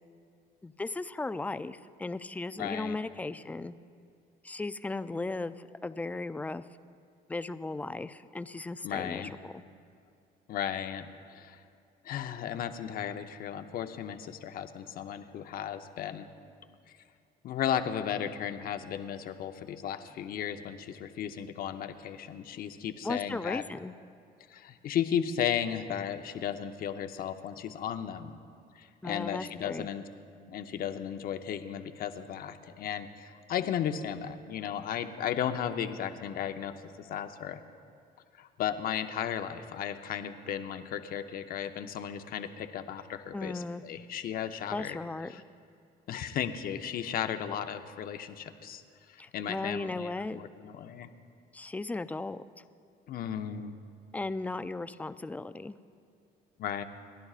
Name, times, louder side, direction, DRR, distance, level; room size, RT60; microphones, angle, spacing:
voice 1, 0.6-3.8 4.4-6.6 7.3-9.6 23.0-23.9 29.0-29.9 43.3-43.8 44.7-45.3 49.2-50.4 51.5-52.4 54.1-55.8, left 3 dB, 10° left, 13 dB, 0.3 m, -36 dB
voice 2, 2.6-3.0 8.8-9.3 10.5-11.6 12.0-16.3 17.4-23.6 24.5-28.3 28.8-30.0 30.5-37.6 38.4-45.0 45.3-45.4 46.1-48.8 49.3-51.1 53.1-53.7 56.6-56.8, left 9 dB, 60° left, 8 dB, 0.8 m, -35 dB
29.5 x 11.0 x 2.4 m, 2.4 s
cardioid pair, 110°, 17 cm